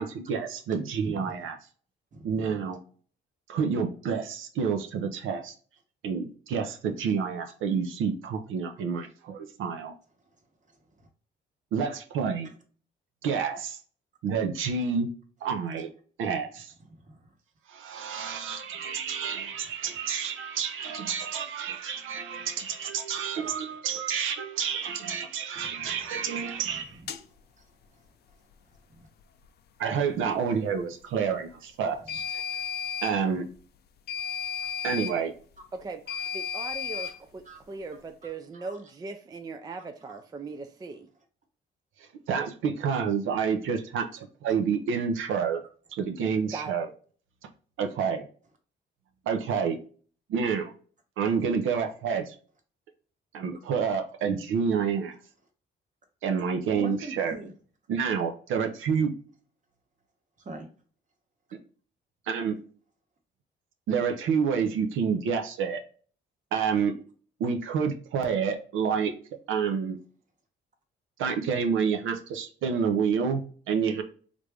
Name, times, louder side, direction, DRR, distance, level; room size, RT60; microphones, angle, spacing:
voice 1, 0.0-1.5 2.2-2.8 3.5-5.5 6.0-9.9 11.7-12.5 13.2-13.8 14.2-15.1 15.4-15.9 16.2-16.7 17.7-27.0 29.8-32.4 33.0-33.5 34.8-35.3 42.3-45.6 45.9-46.9 47.8-48.2 49.3-49.8 50.3-50.7 51.2-52.3 53.3-55.1 56.2-57.3 57.9-59.1 62.3-62.6 63.9-65.8 66.5-66.9 67.4-69.1 69.5-70.0 71.2-74.0, right 6 dB, 85° right, 0.6 m, -28 dB
voice 2, 1.0-1.5 2.1-2.3 10.2-11.1 12.4-12.5 15.8-15.9 16.9-17.3 25.5-26.0 26.7-27.1 27.6-29.1 32.0-32.2 36.1-36.3 36.9-37.1 37.4-37.7 38.2-38.8 39.7-40.2 56.8-57.5 60.4-60.7, right 2 dB, 40° right, 1.0 m, -45 dB
sound 1, 27.1-27.2 32.1-33.2 34.1-35.2 36.1-37.2, left 8 dB, 55° left, 0.5 m, -33 dB
voice 3, 35.7-36.0 36.3-41.1 46.5-46.8, right 3 dB, 20° right, 0.3 m, -39 dB
3.3 x 2.5 x 3.4 m
cardioid pair, 90°, 20 cm